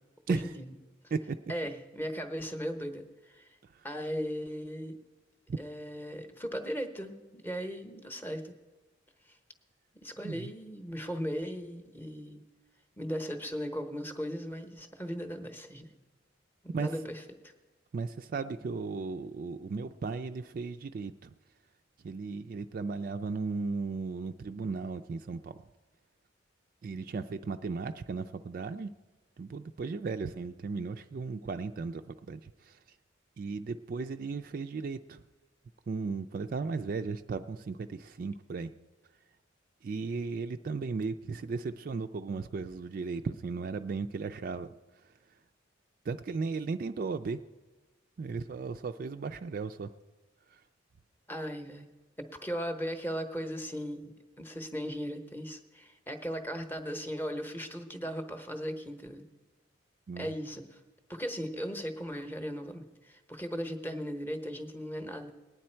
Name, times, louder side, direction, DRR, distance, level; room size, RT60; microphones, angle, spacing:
voice 1, 0.3-0.7 1.5-3.6 3.8-5.0 5.6-8.5 9.2-9.4 10.0-12.4 13.0-15.9 16.6-17.5 51.3-51.9 52.2-59.3 60.2-60.8 61.1-65.3, equal, 10° left, 7 dB, 0.8 m, -37 dB
voice 2, 17.9-21.3 22.0-25.6 26.8-28.9 29.4-32.8 33.4-35.2 35.9-38.7 39.8-45.1 46.0-47.4 48.2-49.9 50.5-50.6 60.1-60.3, right 4 dB, 45° right, 8 dB, 0.3 m, -36 dB
19.5 x 9.5 x 4.4 m, 1.2 s
head